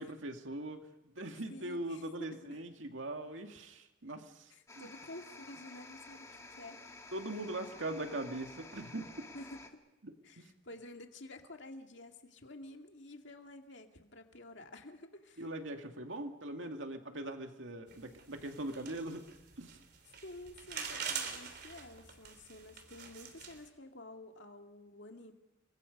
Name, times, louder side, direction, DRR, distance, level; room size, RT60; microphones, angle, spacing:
voice 1, 0.0-4.9 7.1-9.3 10.0-10.5 15.4-19.2 19.6-19.8, right 1 dB, 70° right, 4 dB, 2.3 m, -41 dB
voice 2, 1.5-2.6 4.5-6.3 6.6-6.8 9.3-9.8 10.2-15.5 20.2-25.3, left 2 dB, 60° left, 4 dB, 2.2 m, -51 dB
sound 1, 4.7-9.7, left 3 dB, 15° left, 1.9 m, -52 dB
sound 2, 17.9-23.7, right 6 dB, 55° right, 3.4 m, -44 dB
30.0 x 23.0 x 5.3 m, 0.92 s
head